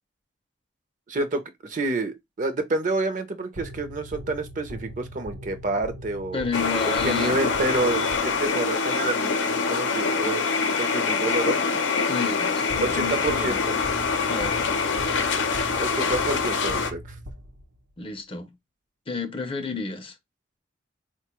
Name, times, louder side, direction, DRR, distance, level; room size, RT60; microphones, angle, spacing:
voice 1, 1.1-6.5 6.8-11.8 12.8-13.6 15.8-17.2, right 2 dB, 45° right, 0.6 m, -28 dB
sound 1, 3.6-8.7 12.7-17.9, equal, 75° right, 0.7 m, -40 dB
voice 2, 6.3-7.4 12.1-13.6 14.3-14.7 18.0-18.5 19.1-20.2, left 4 dB, 30° left, 0.6 m, -31 dB
sound 2, 6.5-16.9, left 5 dB, 85° left, 0.6 m, -25 dB
4.1 x 2.2 x 2.9 m
head